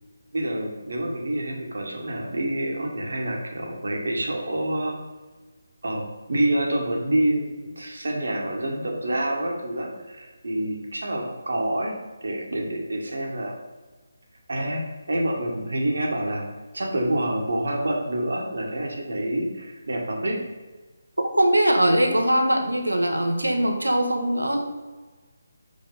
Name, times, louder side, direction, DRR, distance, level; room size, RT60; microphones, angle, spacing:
voice 1, 0.3-4.9 5.8-11.9 12.2-13.5 14.5-14.8 15.1-16.5 16.7-20.4, right 1 dB, 60° right, 0 dB, 1.6 m, -27 dB
voice 2, 21.4-24.7, right 1 dB, 80° right, 3 dB, 1.3 m, -21 dB
6.0 x 5.4 x 4.0 m, 1.3 s
figure-of-eight pair, 150°, 0 cm